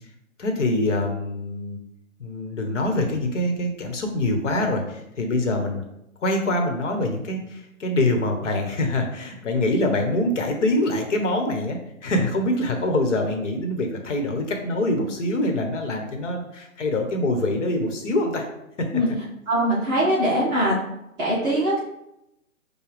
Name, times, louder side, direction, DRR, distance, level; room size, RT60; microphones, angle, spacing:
voice 1, 0.4-1.8 2.2-5.8 6.2-18.5 18.8-18.9 20.0-20.1, left 1 dB, 60° left, 3 dB, 1.1 m, -24 dB
voice 2, 19.5-20.7 21.2-21.8, equal, 10° right, -8 dB, 0.6 m, -21 dB
6.8 x 2.3 x 3.3 m, 0.84 s
hypercardioid pair, 140°, 41 cm